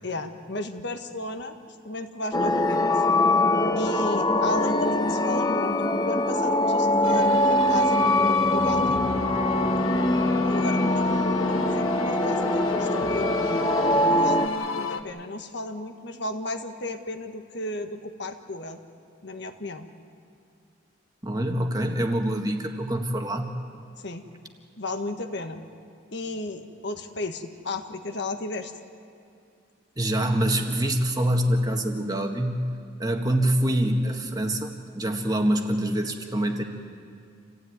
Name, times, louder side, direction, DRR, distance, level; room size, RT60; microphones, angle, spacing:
voice 1, 0.0-1.6 1.8-3.0 3.7-9.0 10.5-13.3 14.1-18.8 19.2-19.9 24.0-24.2 24.8-25.6 26.1-28.7, left 2 dB, 55° left, 6 dB, 1.5 m, -34 dB
sound 1, 2.3-14.5, left 1 dB, 20° left, 0.9 m, -23 dB
sound 2, 7.0-15.0, left 4 dB, 80° left, 1.3 m, -33 dB
voice 2, 21.2-23.5 30.0-32.7 33.0-36.6, right 1 dB, 20° right, 3 dB, 1.7 m, -25 dB
28.0 x 16.0 x 9.5 m, 2.3 s
head